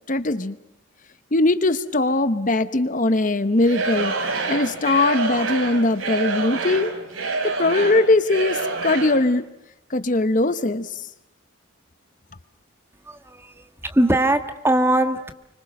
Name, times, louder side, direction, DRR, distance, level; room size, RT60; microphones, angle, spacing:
voice 1, 0.1-0.6 1.3-6.9 7.4-9.5 9.9-11.0, left 2 dB, 40° left, 12 dB, 0.9 m, -21 dB
Singing / Crowd, 3.6-9.3, right 3 dB, 80° right, 3.9 m, -27 dB
voice 2, 13.1-15.3, right 1 dB, 10° right, 8 dB, 1.4 m, -21 dB
30.0 x 25.0 x 6.6 m, 0.84 s
head